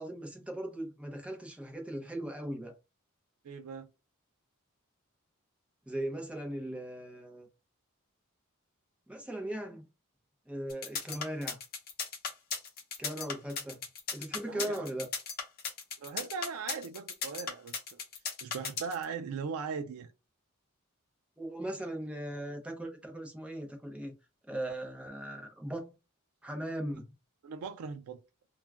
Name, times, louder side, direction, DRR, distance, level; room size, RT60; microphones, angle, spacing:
voice 1, 0.0-2.8 5.9-7.5 9.1-9.9 10.5-11.6 13.0-13.8 14.1-15.1 21.4-24.1 24.5-26.0 26.4-27.0, right 1 dB, 5° right, 0.6 m, -38 dB
voice 2, 3.4-3.9 14.5-14.8 16.0-18.0 18.4-20.1 27.4-28.2, right 5 dB, 90° right, 0.4 m, -39 dB
sound 1, 10.7-19.0, left 5 dB, 45° left, 0.8 m, -36 dB
2.3 x 2.2 x 3.4 m
head